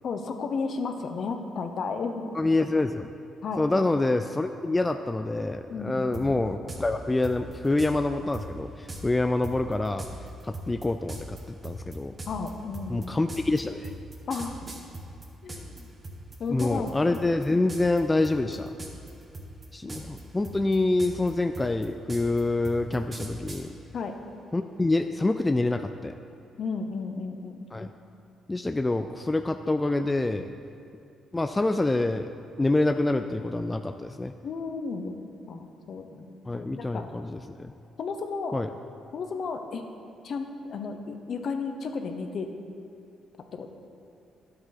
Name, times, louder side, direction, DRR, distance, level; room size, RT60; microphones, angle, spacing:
voice 1, 0.0-2.3 3.4-3.7 5.7-6.1 12.3-13.1 14.3-14.6 15.4-15.9 16.4-16.9 23.9-24.2 26.6-27.7 34.4-35.1 35.5-37.0 38.0-38.5 39.1-39.8 40.2-42.5 43.5-43.7, left 4 dB, 55° left, 6 dB, 0.8 m, -33 dB
voice 2, 2.3-3.1 3.6-10.1 10.4-12.1 12.9-13.9 16.5-18.7 19.7-23.7 24.5-26.1 27.7-27.9 28.5-30.5 31.3-32.3 32.6-34.3 36.5-37.7 38.5-38.7, left 2 dB, 15° left, 8 dB, 0.3 m, -26 dB
sound 1, 6.1-6.3 6.7-6.8 7.2-7.9 8.3-8.5 8.9-9.0 9.4-15.8 16.0-16.9 17.1-17.4 17.7-18.0 18.2-19.1 19.3-20.2 20.4-23.6, right 2 dB, 30° right, 1.3 m, -39 dB
10.5 x 7.7 x 4.2 m, 2.5 s
cardioid pair, 90°, 0 cm